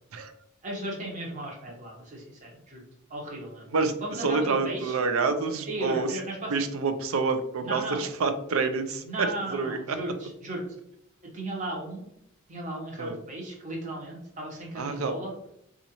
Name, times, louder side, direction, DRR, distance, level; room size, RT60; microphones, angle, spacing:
voice 1, 0.6-2.8 3.1-3.7 4.0-5.0 5.7-6.5 7.6-8.0 9.0-10.6 11.3-12.0 12.5-15.3, right 1 dB, 35° right, -2 dB, 0.9 m, -35 dB
voice 2, 3.7-6.2 6.5-10.0 13.0-13.2 14.7-15.2, right 4 dB, 75° right, 8 dB, 0.5 m, -28 dB
4.0 x 2.5 x 2.9 m, 0.78 s
head